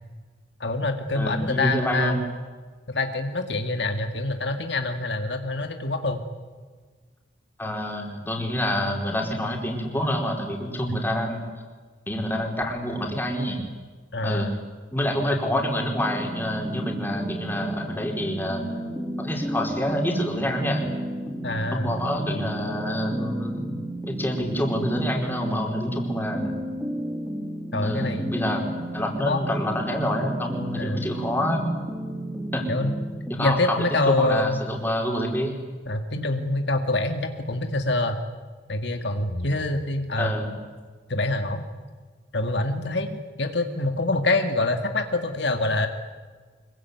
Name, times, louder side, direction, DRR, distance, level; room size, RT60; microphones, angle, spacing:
voice 1, 0.6-2.2 2.9-6.2 10.8-11.0 14.1-14.5 15.3-15.4 21.4-21.9 27.7-28.3 29.3-29.4 30.8-31.0 32.7-33.0 33.4-34.6 35.9-38.2 38.7-40.3 41.1-41.6 42.3-45.9, left 2 dB, 70° left, 6 dB, 2.1 m, -25 dB
voice 2, 1.1-2.2 7.6-11.4 12.1-13.6 14.2-14.6 14.9-18.6 19.2-20.8 21.7-23.8 24.1-26.5 27.8-28.6 28.9-31.6 32.5-32.7 33.3-35.6 40.2-40.5, equal, 10° left, 1 dB, 4.4 m, -27 dB
sound 1, 16.0-33.3, right 1 dB, 5° right, 4.3 m, -33 dB
25.5 x 22.5 x 9.5 m, 1.5 s
head